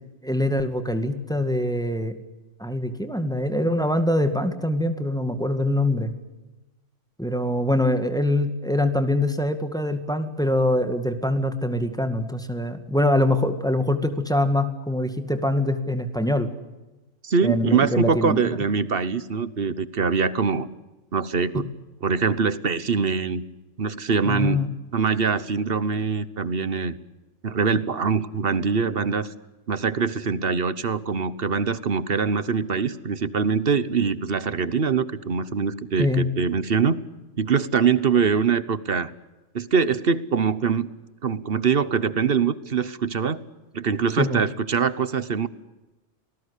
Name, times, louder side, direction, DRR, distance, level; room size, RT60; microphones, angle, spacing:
voice 1, 0.2-2.2 2.6-6.1 7.2-16.5 17.4-18.6 21.5-21.6 24.3-24.7 36.0-36.3 44.2-44.4, left 1 dB, 5° left, 8 dB, 2.0 m, -24 dB
voice 2, 17.2-20.7 21.1-21.7 22.0-23.4 23.8-24.6 24.9-26.9 27.4-29.3 29.7-37.0 37.4-39.1 39.5-40.9 41.2-43.4 43.7-45.5, right 5 dB, 50° right, 16 dB, 1.2 m, -23 dB
28.5 x 19.5 x 8.3 m, 1.1 s
omnidirectional pair, 1.3 m